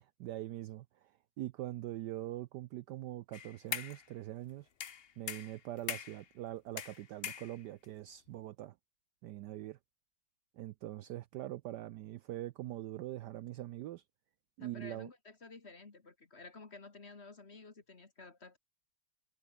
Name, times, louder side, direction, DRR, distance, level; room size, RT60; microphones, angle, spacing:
voice 1, 0.2-4.7 5.2-8.8 9.2-9.8 10.5-14.0 14.6-15.1, right 15 dB, 75° right, 1.0 m, -43 dB
sound 1, 3.3-4.1 4.8-6.3 6.8-7.9, left 8 dB, 55° left, 0.6 m, -41 dB
voice 2, 14.6-18.6, left 3 dB, 35° left, 2.1 m, -52 dB
omnidirectional pair, 2.2 m